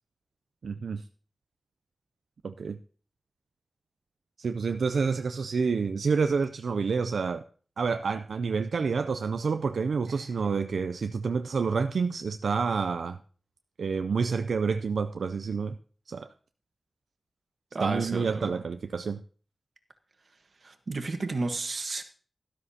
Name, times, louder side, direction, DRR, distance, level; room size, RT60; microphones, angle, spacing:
voice 1, 0.6-1.0 2.4-2.8 4.4-7.4 7.8-13.2 13.8-15.8 16.1-16.3 17.8-19.2, right 5 dB, 80° right, 0.4 m, -28 dB
voice 2, 17.7-18.6 20.6-22.0, right 3 dB, 60° right, 1.3 m, -32 dB
13.0 x 12.0 x 2.8 m
wide cardioid pair, 85°, 0 cm